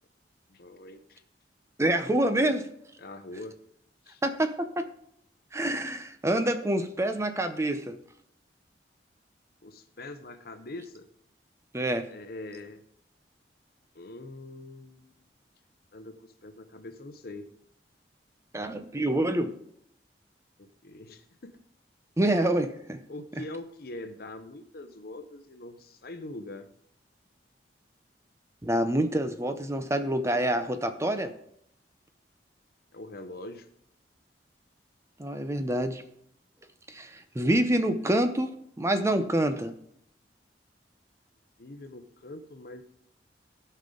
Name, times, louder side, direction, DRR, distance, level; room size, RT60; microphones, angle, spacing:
voice 1, 0.5-1.2 2.2-2.6 3.0-3.6 4.0-4.2 9.6-11.1 12.1-12.8 13.9-15.2 15.9-17.5 20.6-21.6 23.1-26.7 32.9-33.7 37.9-38.1 41.6-42.8, left 2 dB, 60° left, 9 dB, 0.9 m, -43 dB
voice 2, 1.8-2.6 4.2-4.9 5.5-8.0 11.7-12.1 18.5-19.5 22.2-23.0 28.6-31.3 35.2-36.0 36.9-38.5 38.8-39.7, right 1 dB, 15° right, 9 dB, 0.6 m, -27 dB
16.5 x 5.6 x 3.8 m, 0.70 s
head